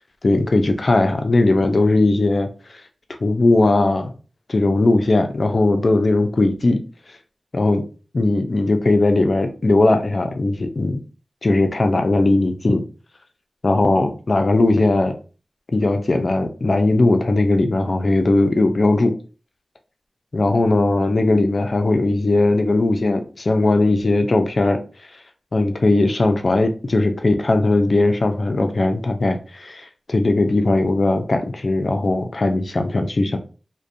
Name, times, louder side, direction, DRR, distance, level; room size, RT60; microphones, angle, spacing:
voice 1, 0.2-2.5 3.2-4.1 4.5-6.8 7.5-7.8 8.1-11.0 11.4-12.8 13.6-15.2 15.7-19.1 20.3-24.8 25.5-33.4, left 2 dB, 60° left, 0.4 m, -18 dB
2.4 x 2.1 x 2.5 m
cardioid pair, 45°, 0 cm